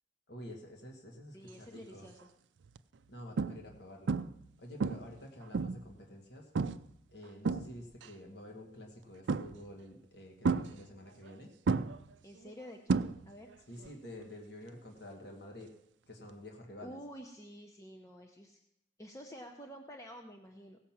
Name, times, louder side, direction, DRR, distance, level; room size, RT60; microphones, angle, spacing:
voice 1, 0.3-2.1 3.1-4.2 4.6-6.5 7.1-11.5 13.7-15.7 16.1-17.0, left 1 dB, 60° left, 1 dB, 1.6 m, -49 dB
voice 2, 1.3-2.3 12.2-13.5 16.8-18.6 19.0-20.8, equal, 15° left, 2 dB, 0.7 m, -49 dB
sound 1, 1.7-2.1 2.6-2.8 3.4-3.8 4.1-4.5 4.8-5.9 6.6-6.9 7.2-8.1 9.3-9.8 10.4-11.3 11.7-13.6 13.8-14.2 16.3-16.4, right 4 dB, 75° right, 0.4 m, -33 dB
17.0 x 5.9 x 7.2 m, 0.80 s
head